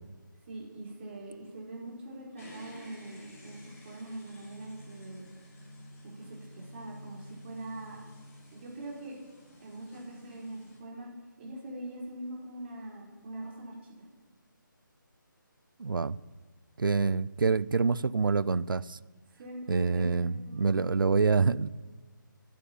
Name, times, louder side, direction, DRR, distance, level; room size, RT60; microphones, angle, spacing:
voice 1, 0.5-5.3 6.0-6.3 6.5-8.0 8.5-9.1 9.6-11.1 11.4-13.7 19.4-20.8, right 1 dB, 35° right, -2 dB, 4.5 m, -43 dB
sound 1, 2.4-10.8, left 1 dB, 40° left, 6.1 m, -51 dB
voice 2, 15.8-16.2 16.8-19.0 19.7-21.7, right 4 dB, 75° right, 20 dB, 0.6 m, -26 dB
11.5 x 11.5 x 8.6 m, 1.4 s
figure-of-eight pair, 160°, 11 cm